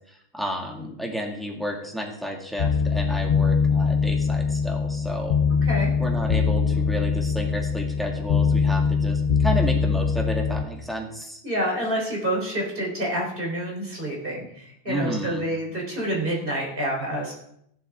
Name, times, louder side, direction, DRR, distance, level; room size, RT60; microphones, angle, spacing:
voice 1, 0.1-5.4 6.0-11.4 14.9-15.4, equal, ahead, 0 dB, 2.0 m, -31 dB
sound 1, 2.6-10.6, left 5 dB, 50° left, 0.6 m, -22 dB
voice 2, 5.6-5.9 11.4-17.3, right 1 dB, 45° right, -2 dB, 3.9 m, -28 dB
15.0 x 11.0 x 3.6 m, 0.73 s
omnidirectional pair, 1.2 m